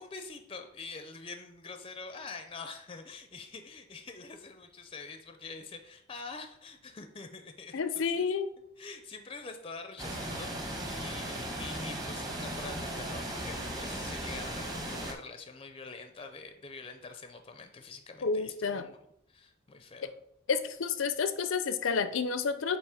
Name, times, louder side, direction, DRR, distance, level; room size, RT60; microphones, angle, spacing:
voice 1, 0.0-8.3 8.8-19.0 19.3-20.1, left 4 dB, 25° left, 6 dB, 0.5 m, -45 dB
voice 2, 7.7-8.5 18.2-18.9 20.5-22.8, left 5 dB, 80° left, 11 dB, 0.5 m, -30 dB
sound 1, 10.0-15.1, right 1 dB, 20° right, 1.0 m, -37 dB
8.2 x 3.0 x 4.9 m, 0.76 s
head